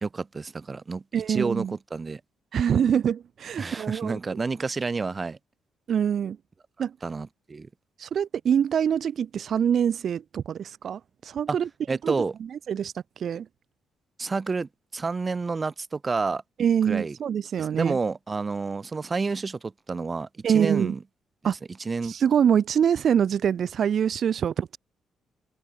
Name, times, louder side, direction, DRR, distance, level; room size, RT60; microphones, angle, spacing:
voice 1, 0.0-1.0 1.3-2.2 3.6-5.4 7.0-7.7 11.5-11.6 11.9-12.3 14.2-16.4 16.8-17.2 17.6-21.0 21.4-21.6 21.8-22.1, right 4 dB, 30° right, 1.0 m, -29 dB
voice 2, 1.1-1.8 2.5-4.2 5.9-6.4 6.8-6.9 8.0-11.7 12.0-12.1 12.7-13.5 16.6-18.0 20.4-20.9 21.4-21.5 22.0-24.8, right 8 dB, 60° right, 0.7 m, -24 dB
cardioid pair, 90°, 0 cm